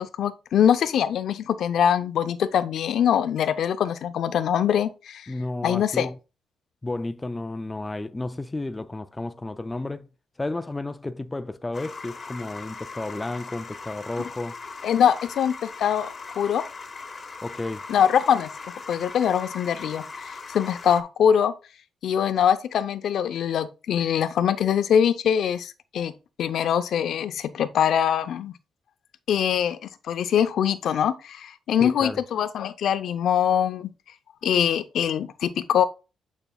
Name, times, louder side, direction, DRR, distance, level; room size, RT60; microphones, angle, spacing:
voice 1, 0.0-5.3 5.6-6.1 14.8-16.6 17.9-18.5 18.9-21.5 22.0-26.1 26.4-28.5 29.3-29.8 30.1-33.9 34.4-35.8, left 9 dB, 70° left, 0.6 m, -23 dB
voice 2, 5.3-6.2 6.8-10.1 10.4-14.6 17.4-17.9 31.8-32.2, left 2 dB, 15° left, 0.3 m, -32 dB
sound 1, 11.7-21.0, left 4 dB, 35° left, 0.9 m, -39 dB
9.0 x 5.3 x 2.3 m
cardioid pair, 105°, 0 cm